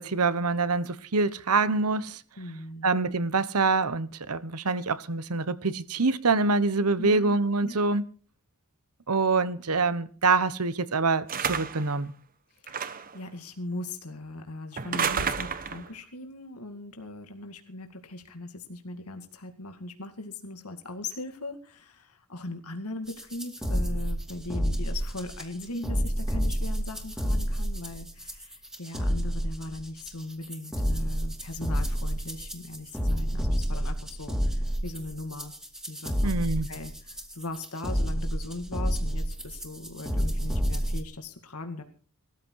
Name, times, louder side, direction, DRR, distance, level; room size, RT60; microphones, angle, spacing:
voice 1, 0.0-2.2 2.8-8.0 9.1-12.1 36.2-36.7, right 3 dB, 80° right, 1.1 m, -25 dB
voice 2, 2.4-2.9 7.0-7.8 12.7-35.5 35.9-36.3 36.7-41.8, left 2 dB, 80° left, 2.2 m, -39 dB
sound 1, 11.3-11.9 12.7-13.2 14.8-15.9, right 6 dB, 40° right, 1.1 m, -30 dB
sound 2, 23.1-41.0, equal, 5° right, 2.1 m, -29 dB
19.0 x 14.0 x 4.7 m
head